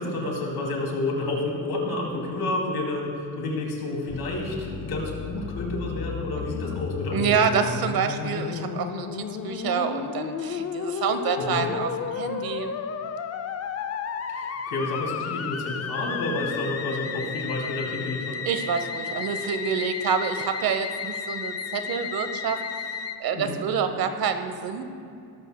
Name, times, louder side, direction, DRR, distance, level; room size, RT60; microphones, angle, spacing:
voice 1, 0.0-7.6 11.5-11.7 14.3-18.4 23.3-23.6, left 2 dB, 70° left, -1 dB, 2.7 m, -30 dB
Musical instrument, 4.1-23.2, left 6 dB, 40° left, 0.6 m, -33 dB
voice 2, 7.1-12.7 18.4-22.6 23.2-24.8, right 6 dB, 65° right, 8 dB, 1.0 m, -27 dB
17.5 x 13.0 x 2.2 m, 2.4 s
cardioid pair, 150°, 38 cm